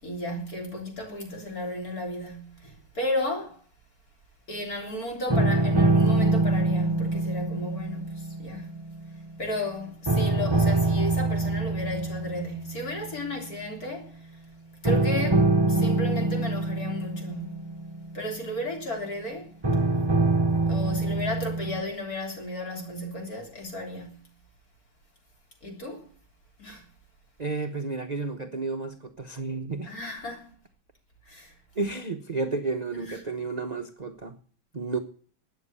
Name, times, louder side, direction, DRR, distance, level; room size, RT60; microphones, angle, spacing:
voice 1, 0.0-3.6 4.5-8.8 9.4-14.3 14.8-17.7 18.1-19.5 20.5-24.3 25.6-26.1 26.6-26.9 29.8-30.5 31.3-31.5 32.9-33.2, left 1 dB, 45° left, 4.0 m, -34 dB
sound 1, 5.3-9.7 10.1-13.3 14.9-18.9 19.6-21.8, right 2 dB, 15° right, 1.0 m, -25 dB
voice 2, 27.4-29.9 31.8-34.4 34.7-35.0, right 3 dB, 30° right, 0.8 m, -31 dB
13.0 x 9.4 x 8.1 m
omnidirectional pair, 2.3 m